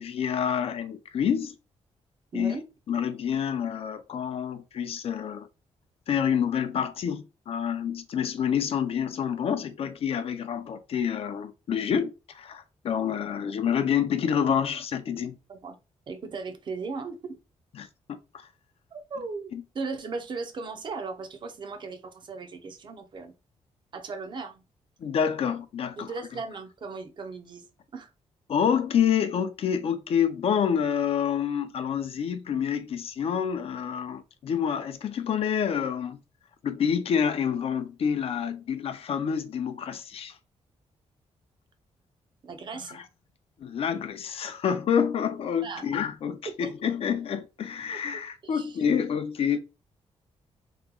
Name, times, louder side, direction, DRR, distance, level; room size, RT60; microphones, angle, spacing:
voice 1, 0.0-1.5 2.3-2.6 2.9-5.5 6.1-15.4 17.8-17.9 19.5-19.6 25.0-26.1 28.5-36.2 36.6-40.4 42.9-43.0 43.6-49.6, left 8 dB, 55° left, 0.4 m, -28 dB
voice 2, 2.3-2.6 15.5-15.8 16.1-17.4 18.9-23.3 23.9-24.6 26.0-27.7 27.9-28.1 42.4-43.0 45.6-45.9 46.5-46.7 47.9-48.8, right 4 dB, 40° right, 0.6 m, -37 dB
2.9 x 2.2 x 3.7 m
wide cardioid pair, 160°, 12 cm